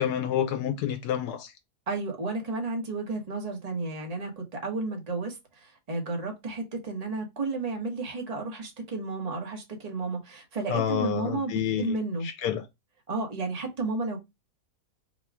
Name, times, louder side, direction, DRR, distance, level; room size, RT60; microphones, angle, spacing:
voice 1, 0.0-1.5 10.7-12.0 12.4-12.6, left 9 dB, 80° left, 1.1 m, -28 dB
voice 2, 1.9-12.3 13.1-14.2, right 3 dB, 30° right, 1.1 m, -32 dB
4.1 x 2.3 x 4.6 m
omnidirectional pair, 1.7 m